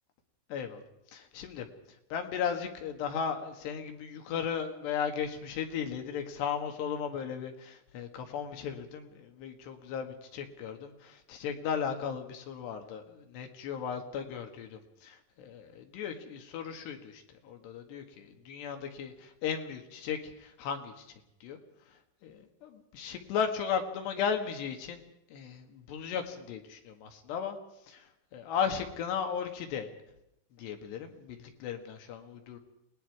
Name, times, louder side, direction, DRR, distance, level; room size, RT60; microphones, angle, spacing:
voice 1, 0.5-0.8 1.1-1.7 2.1-20.9 21.4-21.6 22.2-25.0 25.3-27.6 27.9-28.0 28.3-29.9 30.6-32.6, left 7 dB, 65° left, 5 dB, 3.6 m, -36 dB
28.5 x 20.0 x 4.8 m, 0.83 s
omnidirectional pair, 5.5 m